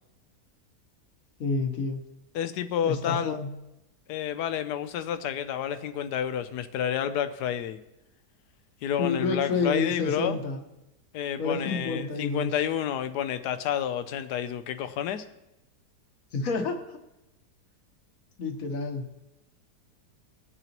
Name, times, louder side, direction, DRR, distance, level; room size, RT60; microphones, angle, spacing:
voice 1, 1.4-2.0 2.8-3.5 9.0-10.6 11.4-12.5 16.3-17.0 18.4-19.0, left 3 dB, 60° left, 5 dB, 1.5 m, -29 dB
voice 2, 2.3-3.4 4.1-7.8 8.8-10.4 11.1-15.2, left 9 dB, 80° left, 10 dB, 1.2 m, -30 dB
20.0 x 6.9 x 2.9 m, 0.92 s
omnidirectional pair, 1.8 m